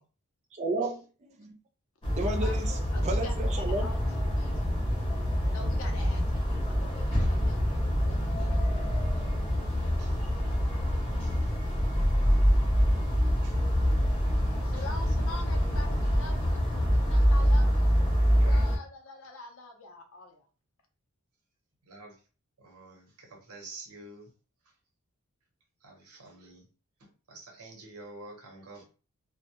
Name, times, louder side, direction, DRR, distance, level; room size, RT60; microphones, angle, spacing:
voice 1, 0.5-1.6 2.2-3.9, right 2 dB, 30° right, 0.3 m, -33 dB
sound 1, 2.0-18.8, equal, 25° left, 0.6 m, -26 dB
voice 2, 2.2-3.3 3.8-4.0 4.4-4.6 5.5-7.8 8.1-8.9 13.6-13.9 14.6-18.0 18.3-20.4, left 2 dB, 70° left, 0.6 m, -45 dB
voice 3, 18.3-18.6 21.9-22.1 22.6-24.3 25.8-26.6 27.3-28.9, right 2 dB, 85° right, 0.9 m, -48 dB
2.2 x 2.0 x 2.8 m
head